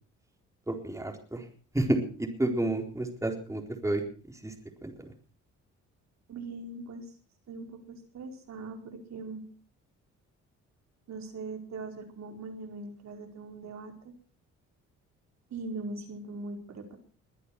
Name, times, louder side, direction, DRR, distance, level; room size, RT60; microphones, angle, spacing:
voice 1, 0.7-1.4 1.7-4.0 4.4-4.5 4.8-4.9, right 1 dB, 10° right, 2 dB, 4.1 m, -30 dB
voice 2, 6.3-7.0 7.5-9.4 11.1-14.1 15.5-17.0, right 3 dB, 65° right, 4 dB, 4.7 m, -41 dB
22.0 x 9.8 x 6.1 m, 0.42 s
cardioid pair, 90°, 30 cm